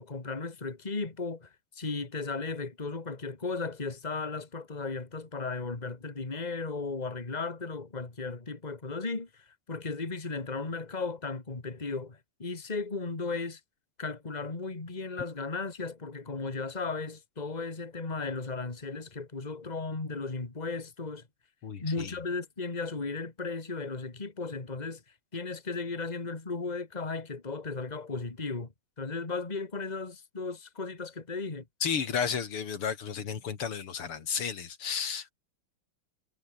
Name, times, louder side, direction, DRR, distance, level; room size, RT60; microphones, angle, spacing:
voice 1, 0.0-13.6 14.0-21.2 21.8-25.0 25.3-28.7 29.0-31.6, left 4 dB, 20° left, 2.4 m, -35 dB
voice 2, 21.6-22.1 31.8-35.3, left 7 dB, 85° left, 3.1 m, -33 dB
omnidirectional pair, 2.4 m